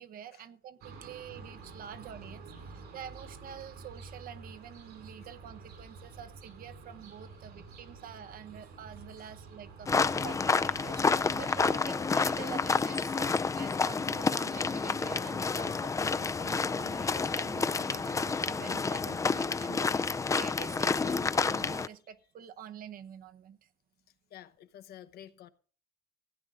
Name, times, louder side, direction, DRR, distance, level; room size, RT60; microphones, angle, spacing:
voice 1, 0.0-23.7, right 9 dB, 60° right, 10 dB, 1.0 m, -47 dB
sound 1, 0.8-11.8, right 4 dB, 75° right, 5.4 m, -49 dB
sound 2, 9.9-21.9, left 4 dB, 20° left, 0.4 m, -29 dB
voice 2, 24.3-25.5, left 11 dB, 70° left, 11 dB, 1.0 m, -50 dB
16.0 x 9.0 x 3.7 m, 0.38 s
cardioid pair, 110°, 17 cm